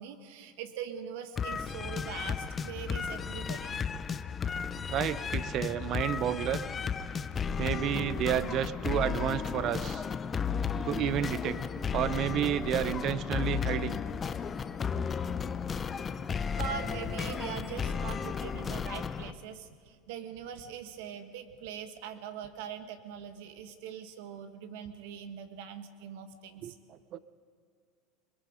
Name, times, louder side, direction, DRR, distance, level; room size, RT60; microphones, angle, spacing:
voice 1, 0.0-3.8 16.5-26.8, right 8 dB, 75° right, 7 dB, 1.8 m, -42 dB
sound 1, 1.4-19.3, left 6 dB, 25° left, 0.7 m, -34 dB
voice 2, 4.9-6.6 7.6-10.0 10.8-11.6 11.9-14.0 26.6-27.2, right 11 dB, 50° right, 14 dB, 0.9 m, -31 dB
23.0 x 22.0 x 5.2 m, 2.1 s
supercardioid pair, 110°, 0 cm